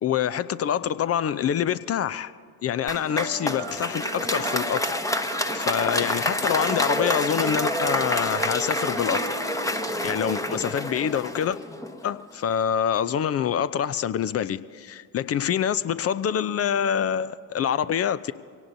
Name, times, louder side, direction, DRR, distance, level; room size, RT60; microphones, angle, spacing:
voice 1, 0.0-2.3 2.6-5.0 5.5-9.2 10.0-11.6 12.0-18.3, left 9 dB, 30° left, 0.6 m, -26 dB
Applause, 2.9-12.2, left 1 dB, 5° left, 1.0 m, -28 dB
sound 1, 3.0-10.1, right 6 dB, 75° right, 1.3 m, -40 dB
24.0 x 18.0 x 2.7 m
hypercardioid pair, 55°, 47 cm